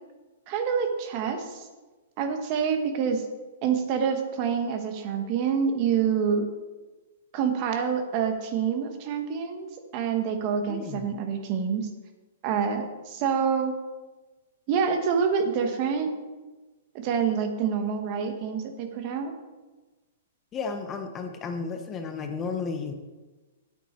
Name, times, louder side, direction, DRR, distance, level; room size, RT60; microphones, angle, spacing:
voice 1, 0.5-1.7 2.2-3.2 3.6-6.5 7.3-9.7 9.9-11.9 12.4-13.7 14.7-16.1 16.9-19.3, right 6 dB, 40° right, 6 dB, 1.3 m, -27 dB
voice 2, 10.7-11.2 20.5-22.9, left 5 dB, 20° left, 6 dB, 0.9 m, -33 dB
9.2 x 8.1 x 4.4 m, 1.2 s
hypercardioid pair, 150°, 0 cm